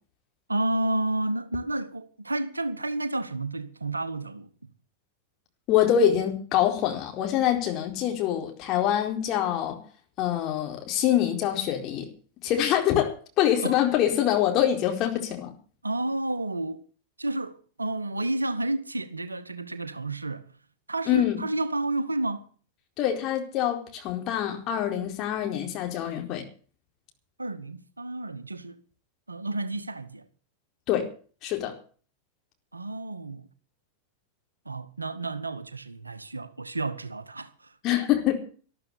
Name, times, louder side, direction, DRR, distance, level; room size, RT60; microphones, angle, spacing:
voice 1, 0.5-4.5 13.6-13.8 15.8-16.8 17.2-20.5 20.9-22.4 27.4-28.8 29.3-30.2 32.7-33.5 34.7-37.5, right 2 dB, 80° right, 1.2 m, -31 dB
voice 2, 5.7-9.8 10.2-12.1 12.4-15.5 21.1-21.4 23.0-26.4 30.9-31.1 31.4-31.8 37.8-38.4, left 10 dB, 40° left, 4.4 m, -25 dB
13.0 x 12.5 x 7.1 m
figure-of-eight pair, 90°, 0 cm